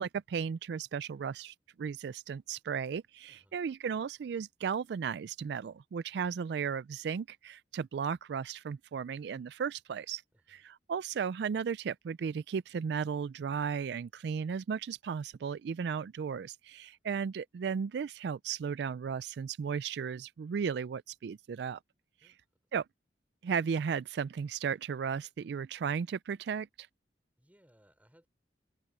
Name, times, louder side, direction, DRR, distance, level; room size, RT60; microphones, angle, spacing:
voice 1, 0.0-10.2 10.5-21.8 22.7-22.9 23.4-26.9, right 6 dB, 65° right, 0.3 m, -35 dB
voice 2, 10.3-10.6 22.2-22.4 27.4-28.3, equal, 10° right, 3.8 m, -66 dB
open air
head